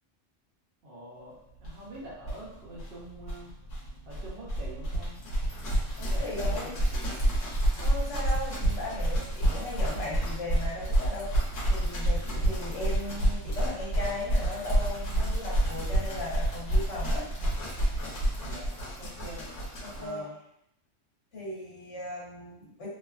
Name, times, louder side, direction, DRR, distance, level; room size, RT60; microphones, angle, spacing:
voice 1, 0.8-3.5 4.1-5.2 6.0-7.5 18.4-19.4 19.9-20.3, right 1 dB, 55° right, -7 dB, 0.8 m, -45 dB
sound 1, 1.6-1.7 1.9-2.0 2.2-20.1, right 1 dB, 85° left, 1.3 m, -29 dB
voice 2, 6.0-6.7 7.8-11.3 11.7-17.3 19.8-20.2 21.3-22.9, left 2 dB, 65° left, -8 dB, 1.6 m, -37 dB
3.1 x 2.2 x 2.4 m, 0.74 s
omnidirectional pair, 1.3 m